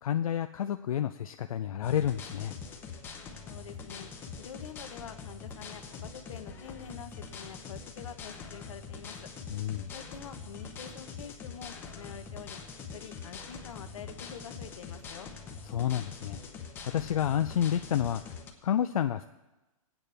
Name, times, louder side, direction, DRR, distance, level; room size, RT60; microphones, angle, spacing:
voice 1, 0.0-2.5 9.5-9.9 15.7-16.4 16.9-18.3 18.6-19.3, left 10 dB, 85° left, 8 dB, 0.5 m, -29 dB
sound 1, 1.8-18.5, left 5 dB, 10° left, 0.7 m, -44 dB
voice 2, 3.5-4.1 4.4-9.2 9.9-12.6 12.9-15.3, left 8 dB, 65° left, 9 dB, 1.0 m, -46 dB
18.5 x 8.8 x 3.4 m, 1.1 s
hypercardioid pair, 165°, 18 cm